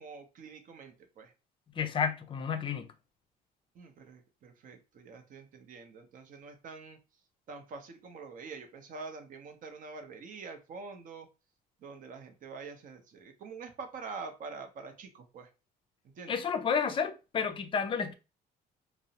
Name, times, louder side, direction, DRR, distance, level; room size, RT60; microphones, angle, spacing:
voice 1, 0.0-1.3 3.7-7.0 7.5-11.3 11.8-15.5 16.1-16.4, right 4 dB, 50° right, 0.6 m, -46 dB
voice 2, 1.7-2.9 16.3-18.1, left 6 dB, 30° left, 0.4 m, -31 dB
2.5 x 2.0 x 2.7 m
cardioid pair, 110°, 17 cm